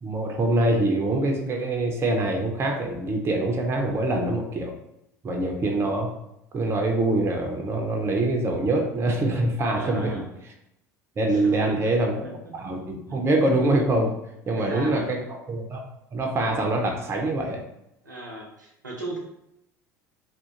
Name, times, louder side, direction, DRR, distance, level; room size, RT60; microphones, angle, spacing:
voice 1, 0.0-4.7 5.2-6.1 6.5-10.2 11.2-12.2 12.5-14.1 14.5-15.2 15.5-15.8 16.1-17.6, right 2 dB, 25° right, 2 dB, 0.5 m, -24 dB
voice 2, 9.7-10.2 11.3-12.5 13.1-13.3 14.6-15.2 18.0-19.2, right 1 dB, 90° right, -2 dB, 0.6 m, -37 dB
2.3 x 2.1 x 2.8 m, 0.82 s
figure-of-eight pair, 70°, 10 cm